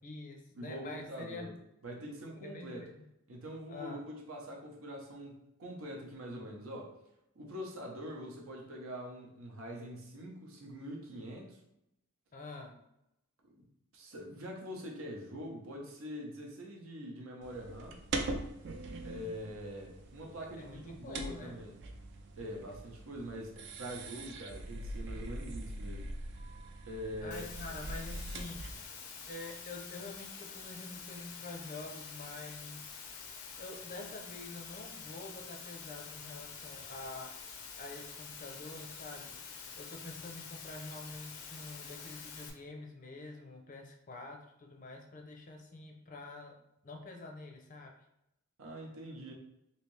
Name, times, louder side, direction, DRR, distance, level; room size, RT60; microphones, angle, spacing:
voice 1, 0.0-1.5 2.4-3.0 3.7-4.1 12.3-12.8 20.6-21.6 27.2-28.6 29.3-33.0 33.6-37.4 37.8-39.3 39.8-46.5 46.8-47.9, left 3 dB, 35° left, 3 dB, 0.5 m, -47 dB
voice 2, 0.6-1.5 1.8-2.9 3.3-6.9 7.3-11.6 13.9-18.0 19.0-21.8 22.4-26.1 26.9-27.5 48.6-49.3, equal, 70° right, 0 dB, 0.8 m, -44 dB
sound 1, 17.4-28.8, right 2 dB, 55° right, 0.4 m, -42 dB
Water, 27.3-42.5, left 5 dB, 90° left, 0.6 m, -47 dB
3.2 x 2.7 x 3.1 m, 0.83 s
head